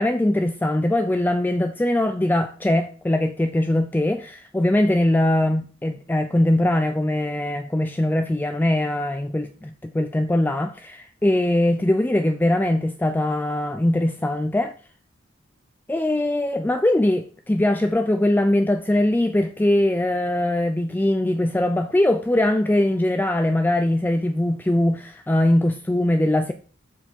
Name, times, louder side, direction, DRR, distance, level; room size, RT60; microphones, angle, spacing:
voice 1, 0.0-14.7 15.9-26.5, left 1 dB, 10° left, 0.4 m, -21 dB
7.0 x 5.7 x 4.3 m
head